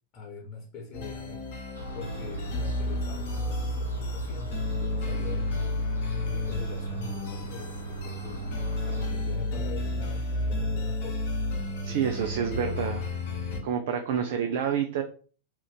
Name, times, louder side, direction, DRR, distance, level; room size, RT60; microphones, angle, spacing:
voice 1, 0.1-1.4 1.9-5.6 6.1-8.4 8.8-11.3 11.8-12.5, left 3 dB, 30° left, -2 dB, 1.1 m, -43 dB
sound 1, 0.9-13.6, left 1 dB, 50° left, 0.9 m, -31 dB
sound 2, 1.7-9.1, right 2 dB, 90° left, 0.8 m, -41 dB
voice 2, 11.8-13.1 13.6-15.0, right 8 dB, 55° right, 5 dB, 0.4 m, -28 dB
2.9 x 2.5 x 3.9 m, 0.40 s
figure-of-eight pair, 90°, 0 cm